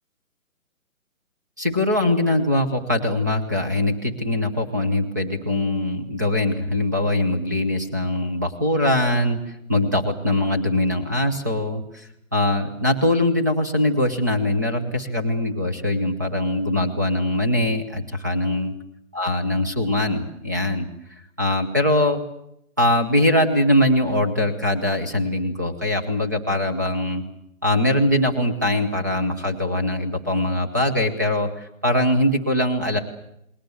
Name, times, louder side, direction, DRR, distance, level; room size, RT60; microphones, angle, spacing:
voice 1, 1.6-18.7 19.1-20.9 21.4-22.2 22.8-27.2 27.6-33.0, left 1 dB, 15° right, 4 dB, 1.0 m, -22 dB
28.5 x 21.0 x 7.9 m, 0.79 s
hypercardioid pair, 180°, 43 cm